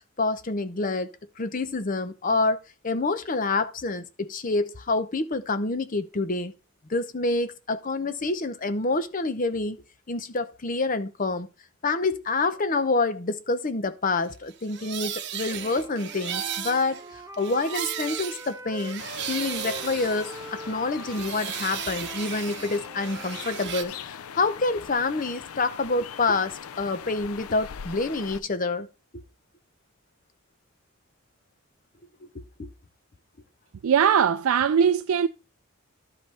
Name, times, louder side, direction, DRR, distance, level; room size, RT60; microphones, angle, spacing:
voice 1, 0.2-1.1 1.4-2.6 2.8-6.5 6.9-9.8 10.1-11.5 11.8-28.9 29.1-29.2 32.3-32.7, left 3 dB, 40° left, 0.7 m, -27 dB
sound 1, 14.5-20.7 21.0-23.8, right 9 dB, 55° right, 1.0 m, -35 dB
Wind instrument woodwind instrument, 15.4-19.0 19.3-23.5, equal, 15° right, 0.6 m, -43 dB
sound 2, 19.0-28.4, left 7 dB, 90° left, 0.5 m, -41 dB
voice 2, 33.8-35.3, right 7 dB, 80° right, 0.4 m, -20 dB
12.0 x 5.3 x 4.3 m
head